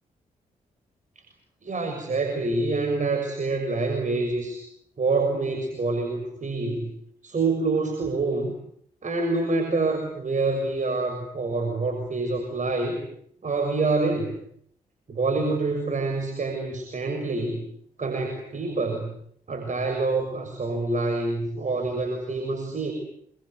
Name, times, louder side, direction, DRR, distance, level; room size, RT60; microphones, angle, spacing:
voice 1, 1.6-4.6 5.0-6.9 7.2-8.5 9.0-13.0 13.4-14.3 15.1-17.6 18.0-19.1 19.5-22.9, right 3 dB, 50° right, 5 dB, 6.5 m, -26 dB
27.5 x 24.0 x 8.2 m, 0.68 s
supercardioid pair, 45°, 16 cm